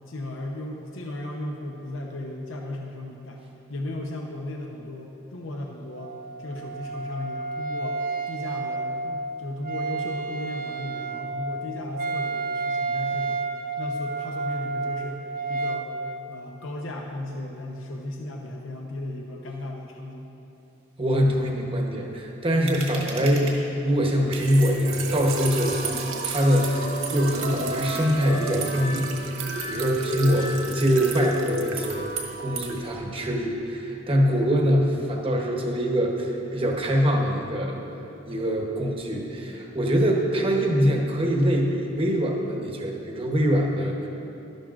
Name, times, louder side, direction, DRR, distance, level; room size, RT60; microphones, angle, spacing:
voice 1, 0.1-3.4 3.7-6.1 6.4-13.4 13.8-15.9 16.3-20.3, left 1 dB, 70° left, 0 dB, 0.8 m, -36 dB
Wind instrument woodwind instrument, 5.9-15.9, right 3 dB, 45° right, 0.5 m, -31 dB
voice 2, 21.0-23.5 23.8-32.1 32.4-37.8 38.3-44.1, equal, 25° right, 0 dB, 1.0 m, -24 dB
sound 1, 22.7-23.5 24.3-24.4 25.1-32.6, right 2 dB, 70° right, 1.7 m, -33 dB
Trickle dribble / Fill (with liquid), 24.2-33.0, right 3 dB, 90° right, 0.9 m, -35 dB
12.0 x 12.0 x 2.5 m, 2.9 s
head